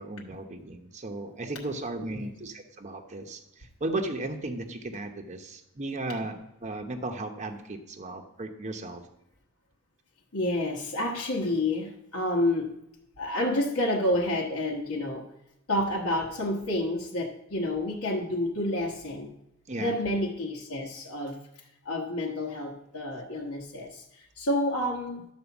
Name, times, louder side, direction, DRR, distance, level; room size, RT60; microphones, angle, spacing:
voice 1, 0.0-9.0 19.7-19.9, right 2 dB, 35° right, 5 dB, 0.8 m, -35 dB
voice 2, 10.3-12.7 13.2-15.3 15.7-19.3 19.8-21.4 21.8-25.3, left 1 dB, 70° left, -3 dB, 1.2 m, -29 dB
11.5 x 4.4 x 7.1 m, 0.83 s
head